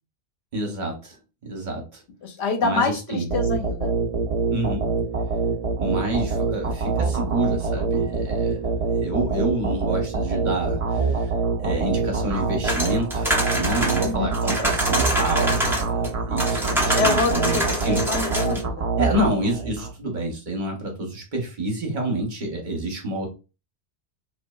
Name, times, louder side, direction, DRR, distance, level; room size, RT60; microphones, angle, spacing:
voice 1, 0.5-1.2 1.4-2.0 2.6-3.3 4.5-4.9 5.8-8.6 9.0-11.3 11.6-18.0 19.0-23.3, right 1 dB, 50° right, 0 dB, 0.8 m, -28 dB
voice 2, 2.2-3.9 14.0-14.3 16.9-18.9, left 4 dB, 75° left, 5 dB, 0.9 m, -26 dB
sound 1, 3.3-19.9, right 4 dB, 70° right, 0.3 m, -25 dB
sound 2, 12.6-16.1 16.4-18.6, equal, 5° right, 0.5 m, -25 dB
2.8 x 2.2 x 2.2 m, 0.30 s
omnidirectional pair, 1.1 m